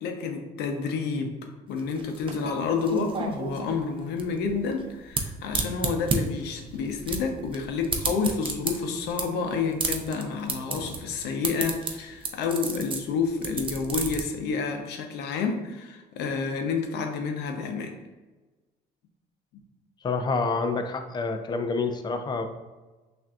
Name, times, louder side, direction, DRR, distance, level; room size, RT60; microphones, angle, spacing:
voice 1, 0.0-18.0, left 5 dB, 80° left, 4 dB, 0.6 m, -29 dB
sound 1, 1.7-14.2, right 4 dB, 30° right, 0.5 m, -32 dB
voice 2, 20.0-22.5, left 4 dB, 25° left, 6 dB, 0.4 m, -27 dB
5.9 x 2.6 x 2.3 m, 1.2 s
cardioid pair, 110°, 17 cm